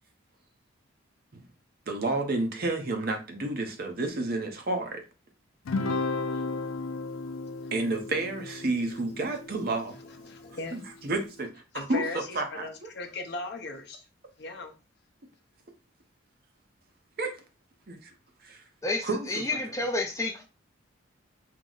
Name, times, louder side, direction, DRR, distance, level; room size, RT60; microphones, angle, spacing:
voice 1, 1.9-5.0 7.7-10.0 10.7-12.9 17.2-17.4 17.9-18.1 18.4-18.6 19.0-19.6, right 2 dB, 50° right, 0.7 m, -31 dB
Guitar, 5.7-10.3, left 3 dB, 90° left, 0.5 m, -34 dB
voice 2, 10.2-10.8 11.7-14.0 14.4-14.7, left 2 dB, 55° left, 0.6 m, -37 dB
voice 3, 18.8-20.4, left 2 dB, 15° left, 0.4 m, -30 dB
4.6 x 2.1 x 3.8 m
head